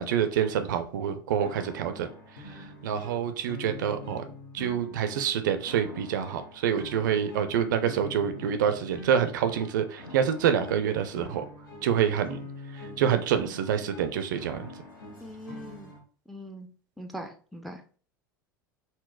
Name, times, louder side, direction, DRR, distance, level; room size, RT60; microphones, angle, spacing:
voice 1, 0.0-2.1 2.4-4.2 4.5-11.5 11.8-12.4 12.7-14.7, right 8 dB, 65° right, 9 dB, 0.4 m, -27 dB
sound 1, 1.4-16.0, left 2 dB, 80° left, 0.8 m, -45 dB
voice 2, 15.2-15.9 16.3-16.7 17.0-17.8, equal, ahead, 5 dB, 0.4 m, -41 dB
3.9 x 2.0 x 2.2 m, 0.41 s
figure-of-eight pair, 80°, 11 cm